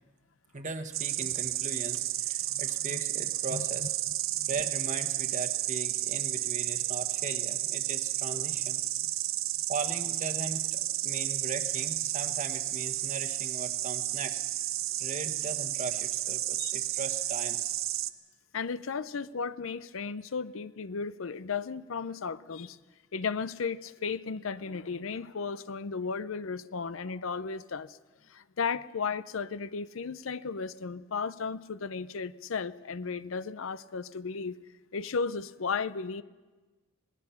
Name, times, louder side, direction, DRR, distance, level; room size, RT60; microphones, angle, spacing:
voice 1, 0.5-3.9 4.5-8.8 9.7-14.4 15.0-17.7, right 3 dB, 35° right, 1.2 m, -39 dB
Insect, 0.9-18.1, right 14 dB, 75° right, 0.8 m, -32 dB
voice 2, 18.5-22.8 23.1-28.0 28.3-34.6 34.9-36.2, left 5 dB, 70° left, 0.6 m, -35 dB
27.0 x 18.5 x 5.8 m
head